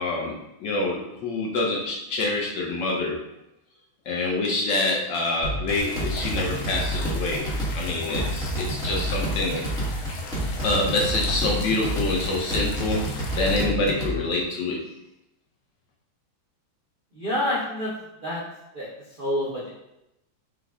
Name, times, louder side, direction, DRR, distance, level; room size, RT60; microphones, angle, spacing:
voice 1, 0.0-3.2 4.1-7.5 7.7-9.6 10.6-14.8, left 2 dB, 65° left, -2 dB, 1.2 m, -26 dB
sound 1, 5.4-14.1, right 1 dB, 5° left, 0.9 m, -29 dB
sound 2, 5.7-13.6, left 3 dB, 85° left, 1.6 m, -39 dB
voice 2, 17.1-17.9 18.2-18.4 18.7-19.7, left 1 dB, 55° right, -8 dB, 0.5 m, -28 dB
5.3 x 2.3 x 3.5 m, 0.87 s
omnidirectional pair, 2.3 m